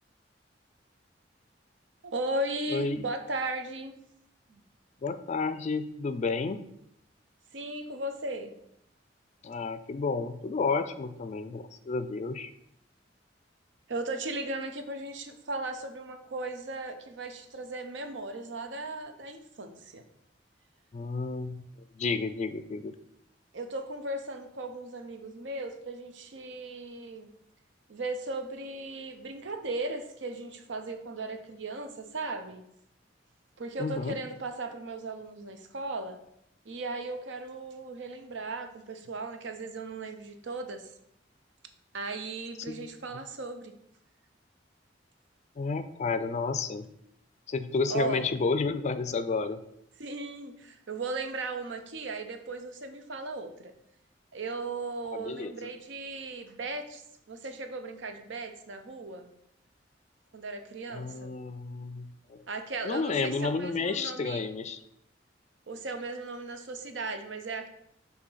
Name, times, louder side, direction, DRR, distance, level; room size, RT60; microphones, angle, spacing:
voice 1, 2.0-3.9 4.5-4.6 7.5-8.5 13.9-20.0 23.5-27.3 27.9-32.6 33.6-36.2 36.6-40.9 41.9-43.7 47.9-48.3 50.0-53.7 54.3-57.0 57.3-59.3 60.3-61.3 62.5-64.5 65.7-67.7, right 2 dB, 80° right, 7 dB, 0.7 m, -37 dB
voice 2, 2.7-3.0 5.0-6.6 9.4-12.5 20.9-21.6 22.0-22.9 33.8-34.2 42.6-42.9 45.6-46.9 47.5-49.6 55.1-55.7 60.9-62.4 62.8-64.8, left 4 dB, 40° left, 11 dB, 0.4 m, -31 dB
6.4 x 2.8 x 5.6 m, 0.75 s
head